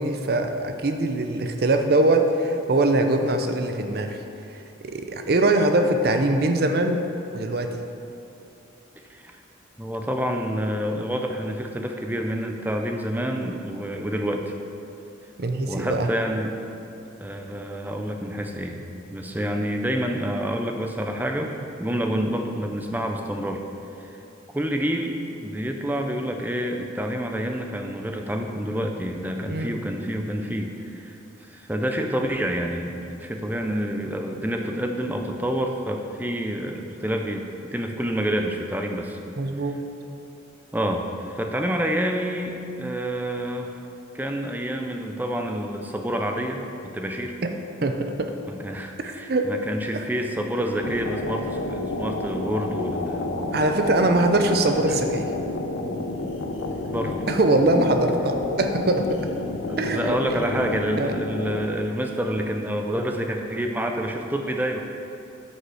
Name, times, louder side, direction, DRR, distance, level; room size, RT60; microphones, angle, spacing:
voice 1, 0.0-4.2 4.8-7.0 7.3-7.8 15.4-16.1 29.5-29.7 39.4-39.8 47.8-48.3 49.0-49.5 49.9-50.0 53.5-55.3 57.3-59.2 59.8-60.4 61.0-61.1, right 2 dB, 55° right, 6 dB, 0.6 m, -22 dB
voice 2, 9.8-14.5 15.7-16.6 17.2-18.8 19.1-21.5 21.8-23.6 24.5-39.2 40.7-43.7 44.1-46.6 46.9-47.3 48.5-53.4 54.9-55.0 56.9-57.3 59.7-64.8, equal, 10° right, 3 dB, 0.5 m, -28 dB
sound 1, 50.8-61.7, left 2 dB, 85° left, 0.6 m, -30 dB
10.0 x 5.6 x 4.8 m, 2.7 s
head